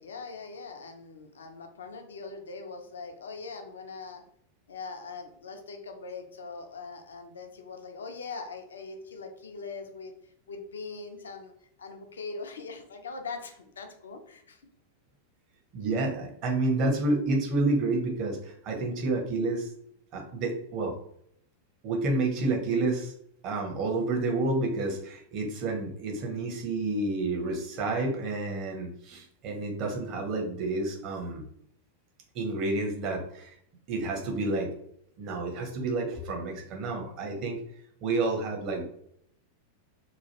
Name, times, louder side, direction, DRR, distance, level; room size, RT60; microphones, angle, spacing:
voice 1, 0.0-4.2 4.7-10.1 10.5-11.5 11.8-14.6, left 4 dB, 70° left, 5 dB, 0.5 m, -41 dB
voice 2, 15.7-19.7 20.1-20.9 21.8-23.1 23.4-31.4 32.3-33.5 33.9-34.7 35.2-37.6 38.0-38.8, right 2 dB, 40° right, 1 dB, 0.9 m, -29 dB
3.0 x 2.3 x 2.9 m, 0.70 s
figure-of-eight pair, 90°, 0 cm